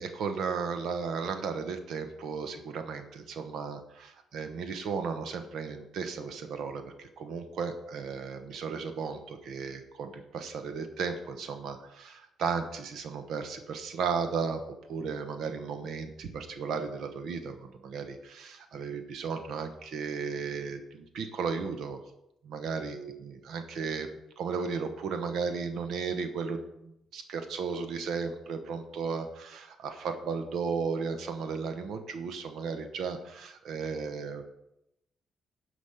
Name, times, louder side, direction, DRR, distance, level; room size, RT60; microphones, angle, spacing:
voice 1, 0.0-22.0 22.4-24.1 24.4-34.4, right 5 dB, 75° right, 7 dB, 1.0 m, -35 dB
10.0 x 5.2 x 5.7 m, 0.84 s
cardioid pair, 90°, 0 cm